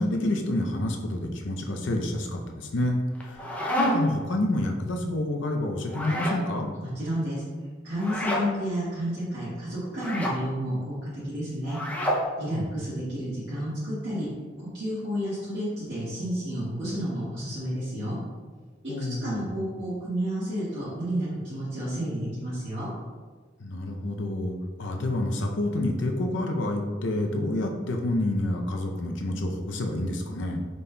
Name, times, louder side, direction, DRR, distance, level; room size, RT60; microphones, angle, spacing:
voice 1, 0.0-3.4 3.8-6.7 12.5-12.7 18.9-19.5 23.6-30.6, left 1 dB, 75° left, 2 dB, 0.6 m, -28 dB
sound 1, 3.1-4.2 5.9-6.4 8.0-8.5 9.9-10.4 11.7-12.3, equal, 10° left, 0.5 m, -28 dB
voice 2, 6.8-7.4 7.8-11.8 12.4-14.3 14.7-18.2 19.0-22.9, equal, 65° right, -11 dB, 1.4 m, -31 dB
5.3 x 4.0 x 2.3 m, 1.4 s
head